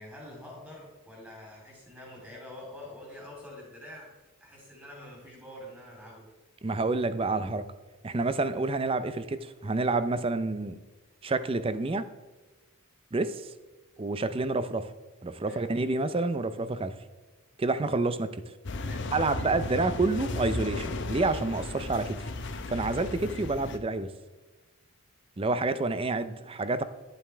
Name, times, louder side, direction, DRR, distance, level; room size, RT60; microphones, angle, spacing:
voice 1, 0.0-6.3 15.5-15.7 18.8-19.1 26.3-26.9, left 1 dB, 10° right, -3 dB, 3.1 m, -46 dB
voice 2, 6.6-7.7 8.0-10.8 11.2-12.1 13.1-13.5 14.0-14.9 15.2-16.9 17.6-18.3 19.1-22.3 22.7-24.1 25.4-26.8, right 3 dB, 25° right, 12 dB, 0.4 m, -28 dB
sound 1, 18.6-23.8, left 2 dB, 55° left, 0.7 m, -35 dB
10.5 x 7.7 x 3.3 m, 1.2 s
head